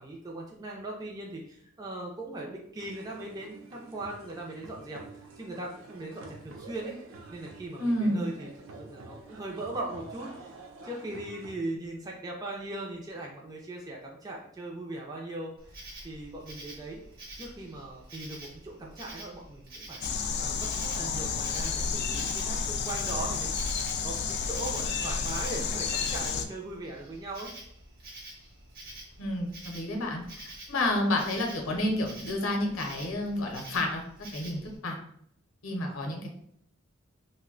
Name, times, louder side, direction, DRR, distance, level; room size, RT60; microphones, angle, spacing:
voice 1, 0.0-5.0 5.4-8.5 8.8-10.6 10.8-17.0 17.4-20.0 20.4-27.5 35.8-36.0, right 2 dB, 20° right, -2 dB, 0.4 m, -39 dB
sound 1, 2.8-11.5, right 3 dB, 80° right, 0.5 m, -48 dB
voice 2, 7.8-8.2 29.2-30.2 30.7-34.0 34.3-34.9 35.6-36.3, left 1 dB, 75° left, 2 dB, 0.7 m, -29 dB
Insect, 15.6-34.8, right 1 dB, 45° right, 0.8 m, -48 dB
sound 2, 20.0-26.5, left 5 dB, 55° left, 0.3 m, -31 dB
2.6 x 2.1 x 3.7 m, 0.67 s
head